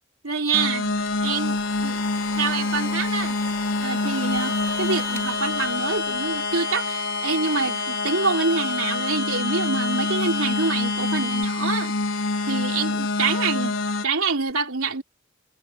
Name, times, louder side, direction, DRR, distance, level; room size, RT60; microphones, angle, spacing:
voice 1, 0.2-3.4 3.8-11.9 12.4-13.8 14.0-15.0, right 4 dB, 90° right, 3.3 m, -26 dB
sound 1, 0.5-14.0, left 3 dB, 70° left, 4.5 m, -26 dB
sound 2, 0.8-6.6, left 2 dB, 15° left, 4.0 m, -41 dB
sound 3, 4.3-11.4, left 2 dB, 15° right, 4.0 m, -33 dB
head